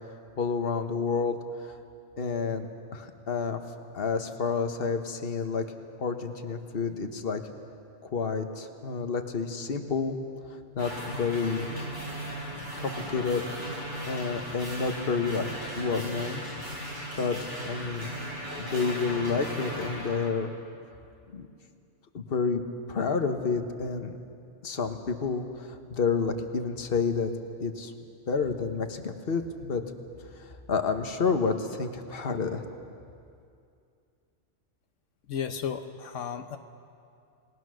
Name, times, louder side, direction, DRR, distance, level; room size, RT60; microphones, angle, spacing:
voice 1, 0.4-1.8 2.2-2.7 2.9-3.6 3.9-5.6 6.0-7.4 8.0-10.2 10.7-11.6 12.8-13.4 14.1-16.4 17.2-17.4 17.7-18.1 18.6-20.5 21.3-21.5 22.1-22.6 22.9-24.2 24.6-27.3 27.6-27.9 28.3-29.8 30.4-32.6, left 5 dB, 50° left, 6 dB, 1.4 m, -29 dB
sound 1, 10.8-20.3, equal, 40° right, 4.5 m, -37 dB
voice 2, 35.3-36.6, left 7 dB, 85° left, 7 dB, 1.2 m, -34 dB
28.5 x 19.0 x 6.4 m, 2.4 s
omnidirectional pair, 1.3 m